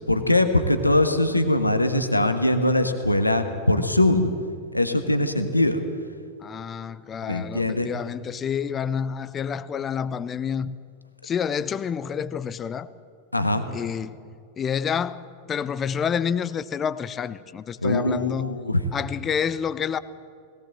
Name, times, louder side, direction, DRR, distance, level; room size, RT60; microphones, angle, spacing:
voice 1, 0.1-4.3 4.7-5.8 7.3-7.9 13.3-13.6 17.8-18.8, left 1 dB, 85° left, 1.3 m, -22 dB
voice 2, 6.4-10.8 11.2-12.9 13.7-14.3 14.6-18.6 18.9-20.0, left 7 dB, 25° left, 0.7 m, -28 dB
20.0 x 18.0 x 7.7 m
figure-of-eight pair, 90°, 0 cm